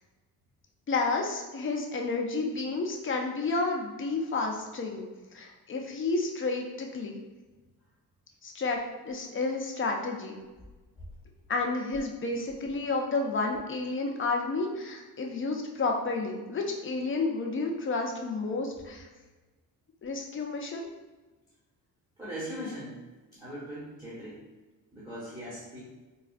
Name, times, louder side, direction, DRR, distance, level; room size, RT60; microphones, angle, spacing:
voice 1, 0.9-5.1 5.3-7.2 8.4-8.8 9.0-10.4 11.5-19.1 20.0-20.9, left 3 dB, 35° left, 1 dB, 0.5 m, -31 dB
voice 2, 22.2-23.0 23.3-24.4 24.9-25.8, equal, 10° right, -9 dB, 1.0 m, -39 dB
4.2 x 2.4 x 2.4 m, 1.2 s
cardioid pair, 120°, 36 cm